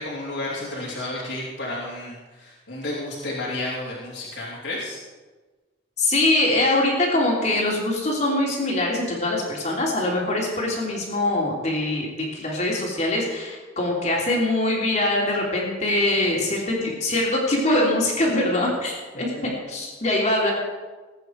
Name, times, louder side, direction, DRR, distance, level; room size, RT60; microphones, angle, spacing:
voice 1, 0.0-5.0 19.1-19.6, left 2 dB, 85° left, -8 dB, 3.3 m, -32 dB
voice 2, 6.0-20.5, left 1 dB, 40° left, -2 dB, 3.4 m, -23 dB
20.0 x 9.1 x 4.8 m, 1.3 s
head